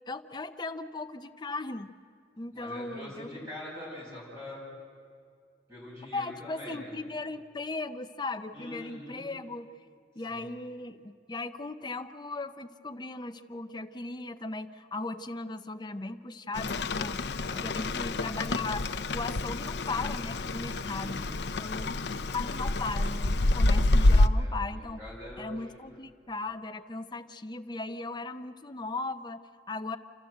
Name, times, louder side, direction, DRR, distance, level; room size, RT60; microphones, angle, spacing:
voice 1, 0.1-1.9 2.4-3.5 6.1-9.7 10.1-17.2 17.5-21.3 21.6-22.1 22.3-25.0 25.4-30.0, left 3 dB, 25° left, 9 dB, 0.6 m, -37 dB
voice 2, 2.5-4.6 5.7-6.9 8.5-9.3 10.3-10.4 17.4-17.9 20.8-21.4 24.3-25.8, left 1 dB, 15° right, -6 dB, 6.5 m, -44 dB
Rain, 16.5-24.3, left 2 dB, 70° left, 0.6 m, -27 dB
28.5 x 13.5 x 7.9 m, 2.1 s
head